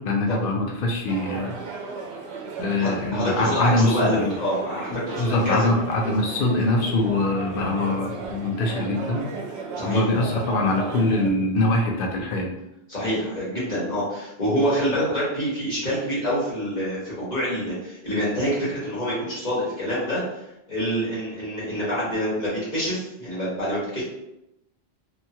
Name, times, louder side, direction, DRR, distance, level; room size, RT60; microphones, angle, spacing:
voice 1, 0.0-1.6 2.6-4.4 4.9-9.3 9.8-12.5, left 2 dB, 65° left, 0 dB, 0.7 m, -23 dB
sound 1, 1.1-11.3, right 4 dB, 90° right, 0.8 m, -35 dB
voice 2, 2.8-5.7 9.7-10.0 12.9-20.2 20.7-24.0, equal, 45° left, -9 dB, 1.4 m, -26 dB
2.8 x 2.2 x 2.7 m, 0.87 s
omnidirectional pair, 1.0 m